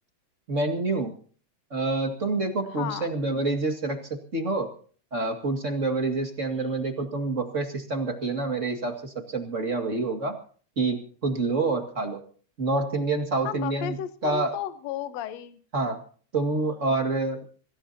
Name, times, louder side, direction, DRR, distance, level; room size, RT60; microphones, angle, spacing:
voice 1, 0.5-1.1 1.7-4.7 5.1-10.4 10.7-12.2 12.6-13.9 14.2-14.5 15.7-16.0 16.3-17.4, right 3 dB, 30° right, 4 dB, 1.5 m, -27 dB
voice 2, 2.6-3.1 13.4-15.6 16.6-16.7, left 11 dB, 70° left, 11 dB, 1.7 m, -34 dB
25.5 x 17.5 x 2.8 m, 0.43 s
omnidirectional pair, 4.6 m